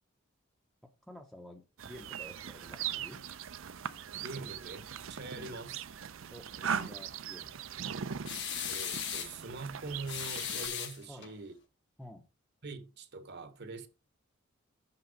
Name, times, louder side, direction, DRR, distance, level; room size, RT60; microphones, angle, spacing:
voice 1, 0.8-3.2 5.3-5.6 6.3-7.7 11.1-11.3 12.0-12.3, equal, ahead, 0.7 m, -51 dB
sound 1, 1.8-10.7, right 8 dB, 70° right, 0.6 m, -40 dB
voice 2, 4.2-5.8 6.6-6.9 8.6-11.5 12.6-13.9, right 3 dB, 55° right, 1.0 m, -44 dB
sound 2, 8.3-9.4 10.1-11.3, left 8 dB, 60° left, 1.4 m, -37 dB
6.8 x 5.8 x 5.1 m
head